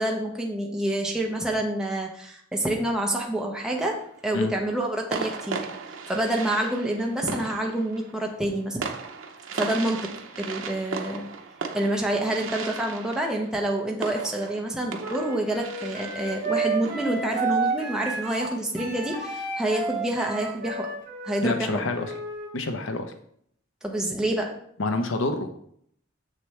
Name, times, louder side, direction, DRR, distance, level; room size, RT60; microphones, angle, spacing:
voice 1, 0.0-4.0 4.2-5.6 5.9-8.8 9.5-10.1 10.4-11.3 11.7-20.9 21.2-21.8 23.8-24.5, right 1 dB, 5° right, -1 dB, 0.9 m, -27 dB
sound 1, 3.6-4.2 5.1-18.5, right 5 dB, 90° right, 0.7 m, -37 dB
Wind instrument woodwind instrument, 15.0-22.5, right 4 dB, 45° right, 2.0 m, -31 dB
voice 2, 21.4-22.1 22.5-23.1 24.8-25.5, left 2 dB, 80° left, 6 dB, 0.7 m, -27 dB
6.9 x 6.5 x 3.2 m, 0.67 s
head